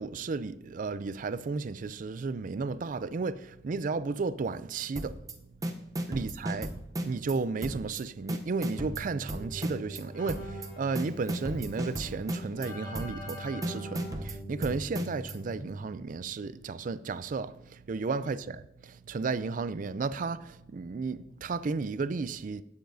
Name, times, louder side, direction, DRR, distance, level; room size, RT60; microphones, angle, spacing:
voice 1, 0.0-5.2 6.1-6.7 7.0-22.6, right 4 dB, 45° right, 0.4 m, -33 dB
sound 1, 5.0-5.3 5.6-7.3 7.6-8.0 8.3-10.0 10.3-10.7 11.0-12.7 12.9-13.3 13.6-15.3, right 1 dB, 20° right, 0.7 m, -35 dB
Keyboard (musical), 8.8-16.1, equal, 90° left, 2.7 m, -43 dB
16.5 x 6.8 x 2.7 m
head